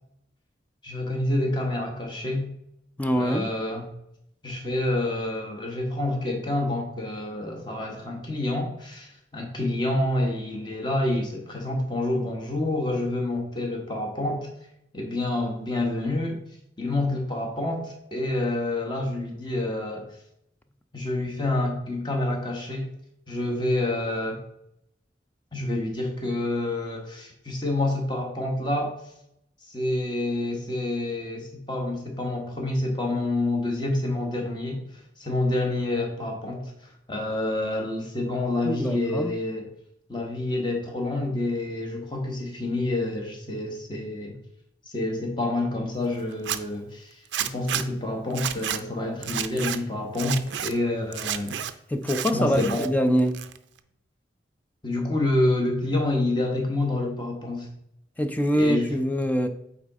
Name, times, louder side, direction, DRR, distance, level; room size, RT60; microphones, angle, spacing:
voice 1, 0.8-2.5 3.2-3.8 4.4-14.5 14.9-16.4 16.8-20.1 20.9-22.9 23.3-24.4 25.5-28.9 29.7-34.8 35.2-36.7 37.1-39.6 40.1-44.4 44.9-47.1 47.5-51.6 52.3-52.9 54.8-57.7 58.5-58.9, left 2 dB, 25° left, 1 dB, 1.3 m, -28 dB
voice 2, 3.0-3.5 38.6-39.3 51.9-53.4 58.2-59.5, equal, 10° left, 7 dB, 0.4 m, -24 dB
Zipper (clothing), 46.3-46.6 47.3-47.8 48.3-48.8 49.2-49.8 50.1-50.7 51.1-51.7 52.0-52.9 53.2-53.8, right 10 dB, 90° right, 0.5 m, -30 dB
8.4 x 4.1 x 3.6 m, 0.77 s
head